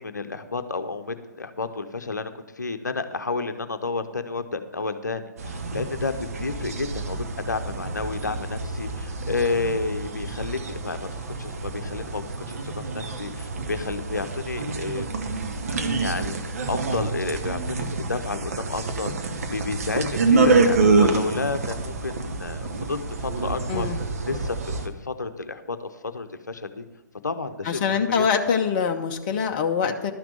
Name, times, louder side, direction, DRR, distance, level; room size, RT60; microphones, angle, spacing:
voice 1, 0.0-2.3 2.6-11.1 11.4-15.1 16.0-23.9 24.3-26.8 27.2-28.2, left 3 dB, 70° left, 9 dB, 0.8 m, -31 dB
sound 1, 5.4-24.9, right 3 dB, 50° right, 1.0 m, -27 dB
voice 2, 27.6-30.1, left 6 dB, 30° left, 5 dB, 0.7 m, -24 dB
12.0 x 6.0 x 6.7 m, 1.1 s
figure-of-eight pair, 125°, 10 cm